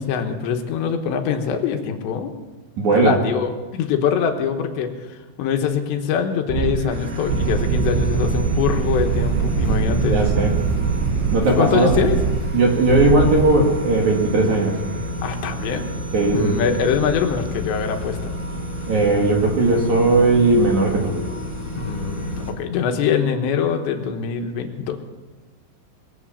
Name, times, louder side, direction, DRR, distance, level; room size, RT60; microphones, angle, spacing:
voice 1, 0.0-2.3 2.9-10.3 11.5-12.2 15.2-15.8 16.3-18.3 21.8-25.0, left 7 dB, 80° left, 5 dB, 3.4 m, -23 dB
voice 2, 2.8-3.2 10.1-10.5 11.3-11.9 12.5-14.8 16.1-16.7 18.9-21.2, right 2 dB, 55° right, 0 dB, 2.5 m, -17 dB
sound 1, 6.5-6.8 7.1-11.4 11.8-12.5 12.9-13.5, right 6 dB, 85° right, 3.5 m, -22 dB
sound 2, 6.9-22.5, left 1 dB, 15° left, 1.6 m, -31 dB
22.0 x 7.9 x 7.3 m, 1.2 s
omnidirectional pair, 5.1 m